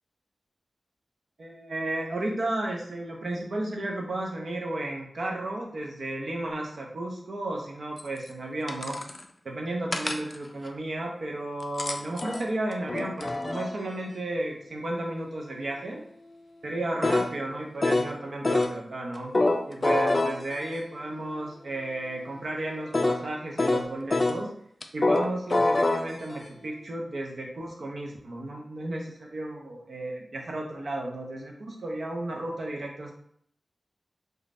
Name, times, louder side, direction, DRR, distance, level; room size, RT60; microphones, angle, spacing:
voice 1, 1.4-9.0 9.4-16.0 16.6-19.3 19.7-24.5 24.9-33.1, right 1 dB, 70° right, 0 dB, 0.6 m, -33 dB
sound 1, 8.0-8.1 8.7-9.2 9.9-10.4 11.6-13.7 17.0-17.3 17.8-18.1 18.4-18.8 19.3-20.8 22.9-23.3 23.6-24.4 24.8-26.5, left 2 dB, 45° left, 0.3 m, -25 dB
3.2 x 2.3 x 2.5 m, 0.64 s
cardioid pair, 45°, 0 cm